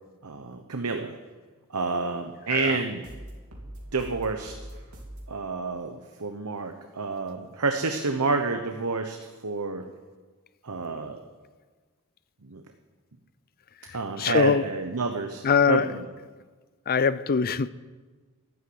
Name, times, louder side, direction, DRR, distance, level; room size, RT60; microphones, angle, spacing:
voice 1, 0.2-1.1 1.7-3.0 3.9-4.5 5.3-9.2 9.4-9.8 10.6-11.2 12.4-12.6 13.9-16.0, right 4 dB, 85° right, 1.0 m, -29 dB
sound 1, 3.0-5.3, right 1 dB, 70° right, 3.1 m, -42 dB
voice 2, 13.8-14.6 15.4-15.9 16.9-17.7, left 6 dB, 40° left, 0.5 m, -23 dB
12.0 x 11.5 x 8.0 m
head